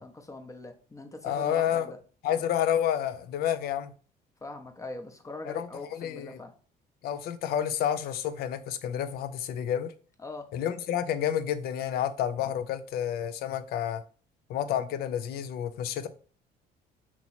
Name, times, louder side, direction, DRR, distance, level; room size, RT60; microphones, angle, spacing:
voice 1, 0.0-2.0 4.4-6.5 10.2-10.5, left 2 dB, 20° left, 0.7 m, -42 dB
voice 2, 1.2-1.9 2.2-3.9 5.5-6.4 7.0-9.9 10.5-14.0 14.5-16.1, left 10 dB, 70° left, 0.5 m, -30 dB
2.9 x 2.9 x 4.1 m
cardioid pair, 110°, 17 cm